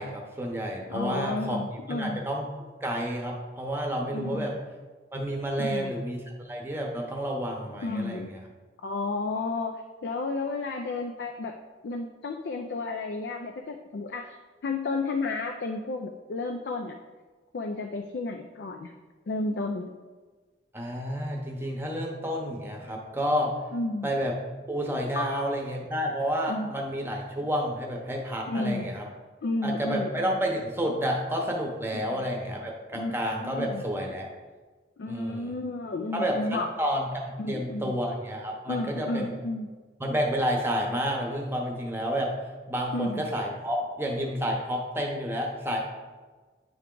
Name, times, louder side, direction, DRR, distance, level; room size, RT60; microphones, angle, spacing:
voice 1, 0.0-1.6 1.9-2.5 2.8-4.5 5.1-8.4 20.7-23.5 24.0-24.3 24.7-29.1 29.6-34.3 35.1-35.6 36.1-39.4 40.0-42.3 42.7-45.8, equal, 15° right, 0 dB, 0.8 m, -30 dB
voice 2, 0.9-2.2 4.1-4.6 5.6-5.9 7.8-8.4 8.8-11.6 11.8-14.4 14.6-17.0 17.5-18.9 19.3-19.9 23.7-24.1 25.2-25.5 26.5-26.7 28.5-28.9 29.4-30.3 31.9-32.3 32.9-33.1 33.4-33.8 35.0-36.7 37.4-38.0 38.7-39.7 42.9-43.3, left 2 dB, 65° left, 4 dB, 0.4 m, -32 dB
9.3 x 3.4 x 3.8 m, 1.3 s
head